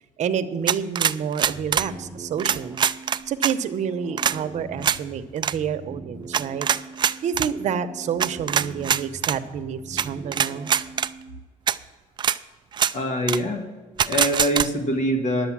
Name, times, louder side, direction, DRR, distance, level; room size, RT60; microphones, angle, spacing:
voice 1, 0.2-2.8 3.3-6.7 7.2-10.7, right 7 dB, 60° right, 9 dB, 0.8 m, -28 dB
Mosin Nagant Bolt Action Cycle, 0.7-1.9 2.4-3.5 4.2-4.4 4.8-5.0 5.4-5.5 6.3-7.5 8.2-9.4 10.0-10.1 10.3-11.1 11.7-11.8 12.2-12.4 12.7-12.9 13.3-13.4 14.0-14.7, right 8 dB, 35° right, 0.4 m, -22 dB
sound 1, 1.4-11.4, right 2 dB, 15° right, 0.9 m, -41 dB
voice 2, 12.9-13.7 14.0-15.5, equal, 60° left, 5 dB, 1.7 m, -24 dB
11.0 x 7.9 x 7.4 m, 1.4 s
cardioid pair, 115°, 14 cm